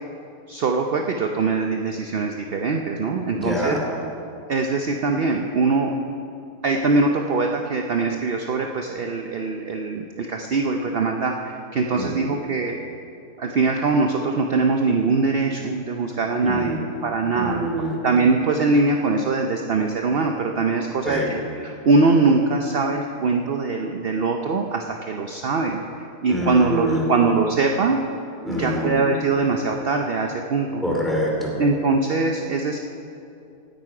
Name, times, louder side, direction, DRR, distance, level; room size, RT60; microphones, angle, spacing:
voice 1, 0.5-3.8 4.5-5.9 6.6-12.8 13.4-17.6 18.0-25.8 26.2-28.0 28.6-30.8 31.6-32.8, right 3 dB, 55° right, 3 dB, 0.6 m, -22 dB
voice 2, 3.3-3.9 11.9-12.3 16.4-16.8 17.3-18.0 21.0-21.3 26.3-27.1 28.4-29.0 30.8-31.5, equal, ahead, -3 dB, 2.7 m, -25 dB
17.0 x 9.3 x 4.9 m, 2.6 s
omnidirectional pair, 1.7 m